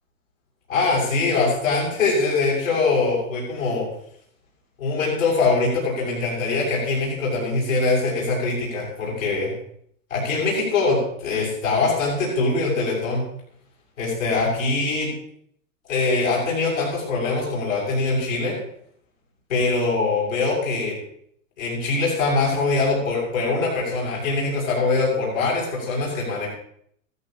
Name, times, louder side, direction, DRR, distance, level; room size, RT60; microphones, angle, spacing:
voice 1, 0.7-3.9 4.8-9.5 10.1-13.2 14.0-15.1 15.9-18.6 19.5-20.9 21.6-26.5, left 3 dB, 85° left, -4 dB, 7.6 m, -23 dB
16.5 x 16.0 x 3.2 m, 0.66 s
hypercardioid pair, 105°, 40 cm